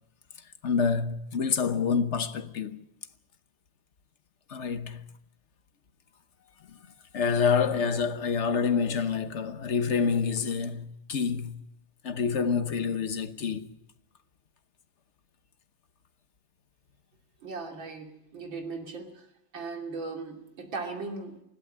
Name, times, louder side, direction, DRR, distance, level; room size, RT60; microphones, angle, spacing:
voice 1, 0.6-2.8 4.5-5.0 6.7-6.8 7.1-11.6 12.0-13.7, left 6 dB, 45° left, 1.1 m, -27 dB
voice 2, 17.4-19.3 19.5-21.4, right 4 dB, 75° right, 3.6 m, -38 dB
20.5 x 16.0 x 8.7 m
omnidirectional pair, 2.1 m